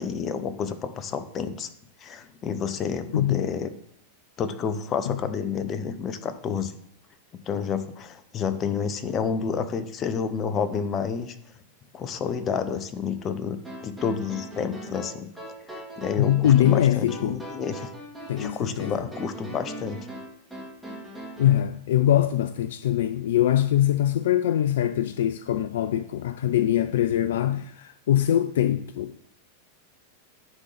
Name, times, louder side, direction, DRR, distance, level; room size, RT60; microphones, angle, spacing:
voice 1, 0.0-1.7 2.0-3.7 4.4-6.7 7.5-11.3 11.9-15.3 15.7-17.9 18.4-20.1, left 6 dB, 30° left, 0.7 m, -30 dB
voice 2, 3.1-3.4 5.1-5.2 16.2-17.4 18.3-19.0 21.4-29.1, left 11 dB, 60° left, 0.3 m, -23 dB
sound 1, 13.6-21.6, right 1 dB, ahead, 2.2 m, -40 dB
9.6 x 3.8 x 5.0 m
figure-of-eight pair, 90°, 0 cm